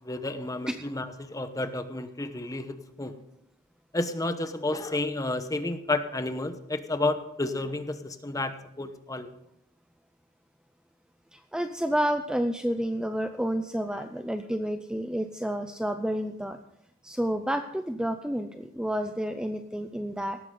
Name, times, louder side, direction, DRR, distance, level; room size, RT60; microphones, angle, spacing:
voice 1, 0.0-3.2 3.9-9.3, left 2 dB, 15° left, 9 dB, 1.0 m, -31 dB
voice 2, 11.3-16.6 17.0-20.4, equal, 5° right, 7 dB, 0.5 m, -30 dB
17.5 x 13.0 x 3.9 m, 0.79 s
head